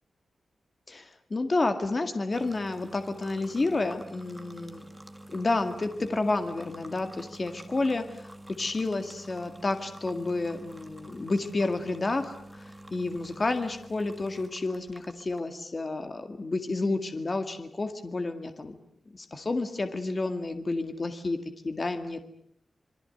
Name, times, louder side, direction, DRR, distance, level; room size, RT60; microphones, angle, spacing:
voice 1, 0.9-4.8 5.3-18.8 19.1-21.4 21.6-22.2, left 2 dB, 30° left, 7 dB, 2.0 m, -30 dB
sound 1, 2.3-15.4, right 1 dB, 10° right, 1.9 m, -47 dB
27.0 x 23.0 x 7.9 m, 0.71 s
wide cardioid pair, 160°, 0 cm